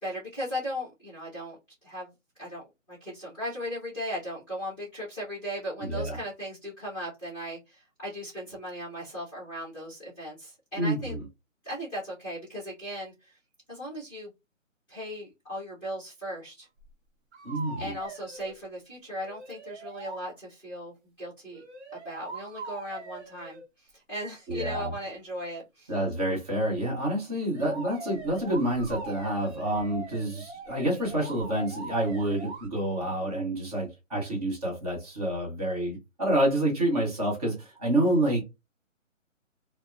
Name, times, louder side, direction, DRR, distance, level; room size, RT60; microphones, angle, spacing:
voice 1, 0.0-1.6 1.8-2.1 2.4-2.6 2.9-11.2 11.6-13.4 13.7-14.3 14.9-16.7 17.8-21.6 22.0-25.9, equal, 5° left, 0.7 m, -37 dB
voice 2, 5.8-6.2 10.8-11.2 17.4-18.0 24.5-24.9 25.9-38.4, right 1 dB, 30° right, 0.9 m, -28 dB
sound 1, 16.8-16.9 17.3-18.6 19.2-20.2 21.5-23.7 27.5-32.7, right 3 dB, 55° right, 0.8 m, -42 dB
2.7 x 2.0 x 2.3 m
hypercardioid pair, 155°, 39 cm